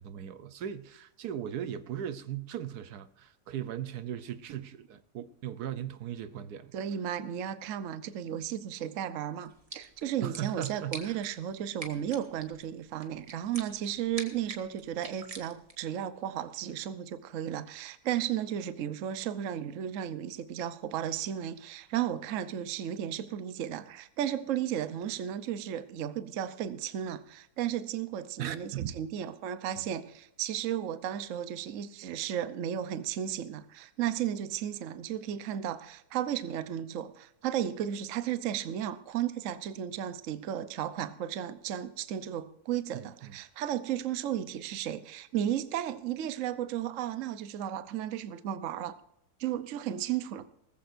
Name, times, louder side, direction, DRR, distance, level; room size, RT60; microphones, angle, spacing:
voice 1, 0.0-6.7 10.2-11.3 28.4-29.0 42.9-43.4, right 10 dB, 75° right, 1.3 m, -38 dB
voice 2, 6.7-49.0 49.4-50.4, right 10 dB, 60° right, 1.0 m, -34 dB
sound 1, 9.4-15.9, right 2 dB, 25° right, 1.6 m, -47 dB
19.5 x 14.5 x 2.6 m
omnidirectional pair, 1.7 m